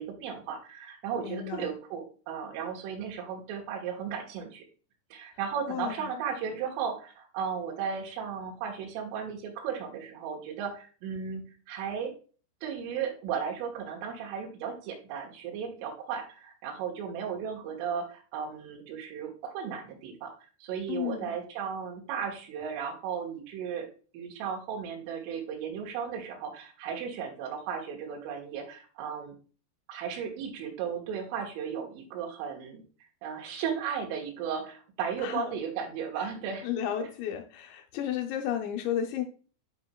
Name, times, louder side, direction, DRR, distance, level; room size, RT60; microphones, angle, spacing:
voice 1, 0.0-4.6 5.1-12.1 12.6-20.3 20.6-23.9 24.1-29.4 29.9-32.8 33.2-36.7 37.0-37.1, right 7 dB, 80° right, 1 dB, 3.9 m, -35 dB
voice 2, 1.2-1.7 5.7-6.1 20.9-21.3 35.2-35.5 36.2-36.3 36.6-39.2, left 10 dB, 85° left, 5 dB, 2.5 m, -33 dB
11.0 x 4.3 x 2.3 m, 0.38 s
omnidirectional pair, 5.7 m